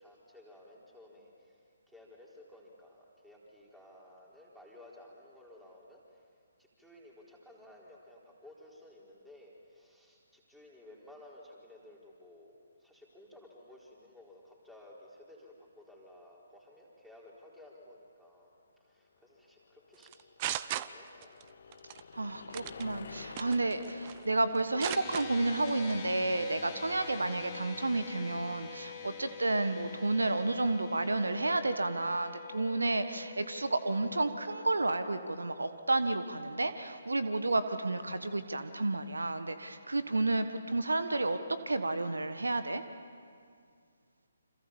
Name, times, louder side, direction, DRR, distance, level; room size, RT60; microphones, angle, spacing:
voice 1, 0.0-6.2 6.6-12.5 12.8-20.1 20.4-21.4, left 1 dB, ahead, -4 dB, 4.2 m, -55 dB
sound 1, 19.3-26.3, left 6 dB, 50° left, 1.3 m, -51 dB
sound 2, 20.0-21.4 21.7-22.0 22.5-22.8 23.4-24.2 24.5-25.2 25.7-25.9, right 13 dB, 30° right, 0.7 m, -37 dB
voice 2, 22.1-41.4 41.7-42.8, right 2 dB, 70° right, 10 dB, 1.3 m, -31 dB
sound 3, 24.8-37.4, left 7 dB, 25° left, 3.0 m, -47 dB
29.0 x 26.5 x 7.2 m, 2.2 s
figure-of-eight pair, 135°, 0 cm